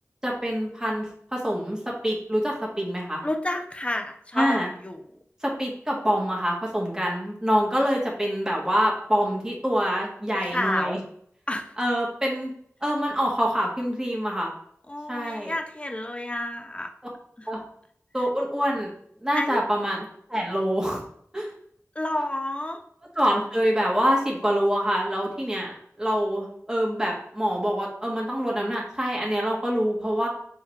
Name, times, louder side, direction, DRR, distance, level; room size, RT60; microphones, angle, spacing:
voice 1, 0.2-1.0 1.3-3.2 4.4-4.7 5.4-11.0 11.8-12.5 12.8-14.5 15.1-15.5 17.5-17.6 18.1-18.9 19.2-21.0 21.3-21.5 23.1-30.3, equal, 10° right, -3 dB, 1.4 m, -25 dB
voice 2, 3.2-5.0 10.3-11.0 11.5-11.8 14.9-16.9 17.4-17.5 18.2-18.3 19.3-19.6 21.9-22.8, left 1 dB, 25° left, 4 dB, 0.7 m, -30 dB
4.2 x 3.7 x 3.1 m, 0.64 s
wide cardioid pair, 40°, 5 cm